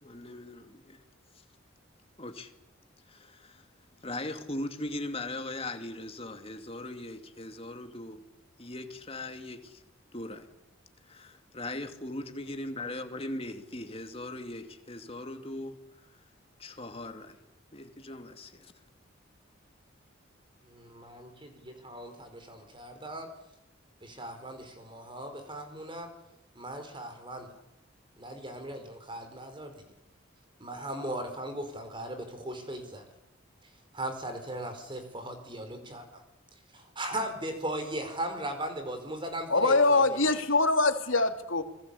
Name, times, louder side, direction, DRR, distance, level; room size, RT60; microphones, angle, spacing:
voice 1, 0.0-1.0 2.2-2.5 3.1-3.7 4.0-8.2 8.6-9.8 10.1-10.5 11.1-15.7 16.6-17.4 17.7-18.7, left 2 dB, 30° left, 2.5 m, -39 dB
voice 2, 20.7-23.3 24.0-26.1 26.5-27.5 28.2-29.8 30.6-33.0 33.9-36.0 36.7-40.3, right 1 dB, 25° right, 4.9 m, -38 dB
voice 3, 39.5-41.6, left 3 dB, 70° left, 2.9 m, -23 dB
29.0 x 22.0 x 8.5 m
head